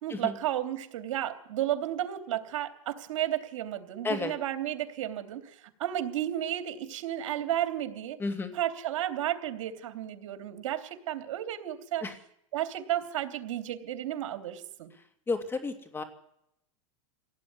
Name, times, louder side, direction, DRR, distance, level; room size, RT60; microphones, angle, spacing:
voice 1, 0.0-8.2 8.5-12.1 12.5-14.9, right 12 dB, 80° right, 8 dB, 3.0 m, -33 dB
voice 2, 8.2-8.5 12.0-12.1 15.3-16.0, left 3 dB, 15° left, 8 dB, 2.5 m, -32 dB
25.0 x 17.5 x 9.6 m, 0.80 s
supercardioid pair, 145°, 16 cm